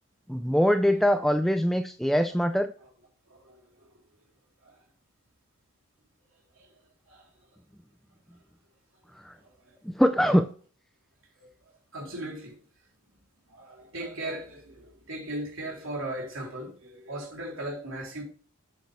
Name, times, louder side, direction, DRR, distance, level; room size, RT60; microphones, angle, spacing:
voice 1, 0.3-2.7 9.1-9.4 9.8-10.5, equal, ahead, 0.3 m, -23 dB
voice 2, 3.3-4.0 4.6-4.8 6.5-6.8 7.1-7.5 9.4-9.8 11.4-12.6 13.5-18.2, right 1 dB, 65° right, 3.5 m, -39 dB
7.9 x 7.7 x 3.3 m
head